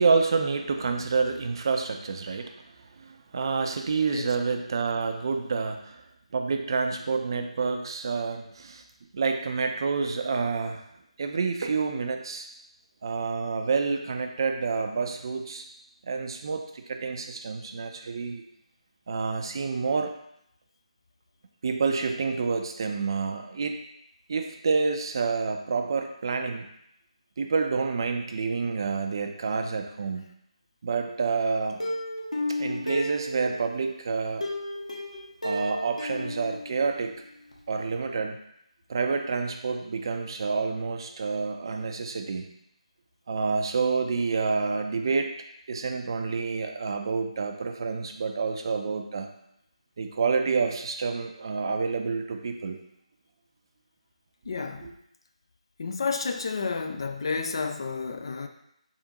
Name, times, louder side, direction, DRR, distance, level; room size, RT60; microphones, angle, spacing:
voice 1, 0.0-2.5 3.0-6.0 6.3-8.8 9.1-10.8 11.2-12.5 13.0-15.6 16.0-18.4 19.1-20.1 21.6-23.8 24.3-26.7 27.4-30.3 30.8-31.8 32.6-34.5 35.4-37.1 37.7-38.4 38.9-42.5 43.3-45.3 45.7-49.3 50.0-52.8 54.8-54.9, right 4 dB, 40° right, 5 dB, 0.4 m, -28 dB
Plucked string instrument, 31.8-33.8 34.4-37.2 37.5-37.6 38.0-38.1, left 1 dB, 85° left, 1.2 m, -33 dB
voice 2, 54.5-54.9 55.8-58.5, left 4 dB, 45° left, 6 dB, 0.4 m, -31 dB
4.2 x 3.6 x 2.9 m, 0.76 s
figure-of-eight pair, 155°, 4 cm